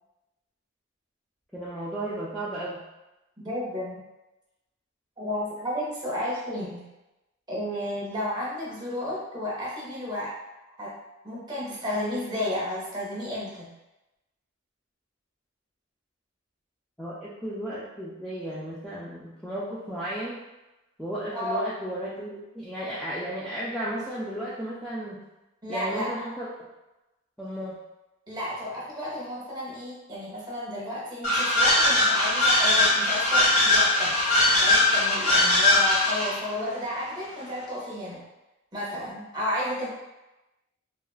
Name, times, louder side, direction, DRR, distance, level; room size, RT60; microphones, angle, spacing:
voice 1, 1.5-2.8 17.0-20.4 21.0-25.2 25.7-26.5 27.4-27.7, right 1 dB, ahead, -10 dB, 0.3 m, -34 dB
voice 2, 3.4-4.0 5.2-6.9 7.5-10.4 10.8-10.9 11.2-13.7 21.3-21.7 25.6-26.1 28.3-38.2 38.7-39.9, left 1 dB, 20° right, -6 dB, 0.8 m, -32 dB
sound 1, 31.2-36.4, left 2 dB, 35° left, 1.0 m, -21 dB
2.9 x 2.4 x 2.3 m, 0.99 s
head